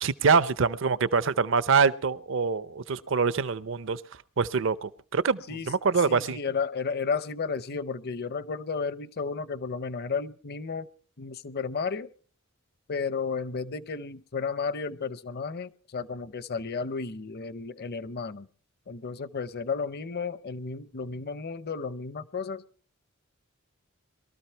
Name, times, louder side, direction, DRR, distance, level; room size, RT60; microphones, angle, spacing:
voice 1, 0.0-4.0 4.4-6.4, right 5 dB, 60° right, 0.6 m, -25 dB
voice 2, 6.1-10.9 11.2-12.1 12.9-18.5 18.9-22.6, left 5 dB, 50° left, 0.7 m, -33 dB
22.5 x 13.5 x 4.5 m
head